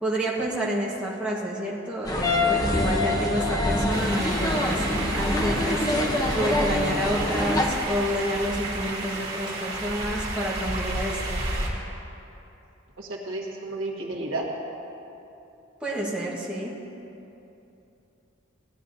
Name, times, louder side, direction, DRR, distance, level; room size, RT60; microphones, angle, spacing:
voice 1, 0.0-11.5 15.8-16.7, equal, 5° right, -6 dB, 1.2 m, -29 dB
sound 1, 2.0-7.7, left 1 dB, 20° left, 0.7 m, -25 dB
sound 2, 3.9-11.7, right 2 dB, 50° right, 2.6 m, -32 dB
voice 2, 13.0-14.5, right 2 dB, 75° right, -1 dB, 1.5 m, -32 dB
16.5 x 9.9 x 2.6 m, 2.9 s
head